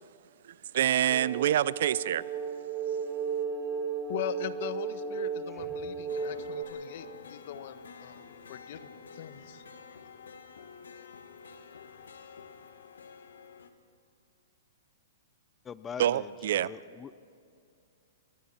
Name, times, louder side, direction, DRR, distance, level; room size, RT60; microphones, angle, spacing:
voice 1, 0.7-2.2 16.0-16.7, right 11 dB, 65° right, 19 dB, 0.5 m, -26 dB
sound 1, 1.1-6.6, right 6 dB, 15° right, 3.9 m, -34 dB
voice 2, 4.1-8.2 8.5-9.6, left 10 dB, 55° left, 11 dB, 1.3 m, -40 dB
sound 2, 6.1-13.7, left 5 dB, 85° left, 1.7 m, -49 dB
voice 3, 15.6-17.2, left 7 dB, 15° left, 15 dB, 0.5 m, -43 dB
28.5 x 21.0 x 4.4 m, 2.4 s
hypercardioid pair, 135°, 0 cm